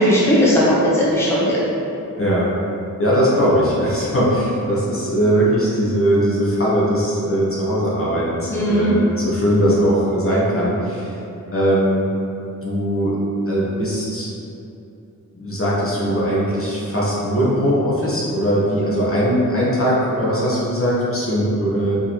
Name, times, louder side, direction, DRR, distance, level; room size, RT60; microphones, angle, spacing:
voice 1, 0.0-1.6 8.5-8.9, equal, 5° left, -8 dB, 1.0 m, -17 dB
voice 2, 2.2-2.5 3.0-11.1 11.5-12.1 12.6-13.2 13.5-14.3 15.4-21.9, equal, 40° left, -7 dB, 1.1 m, -20 dB
4.7 x 3.3 x 2.9 m, 2.9 s
cardioid pair, 65°, 35 cm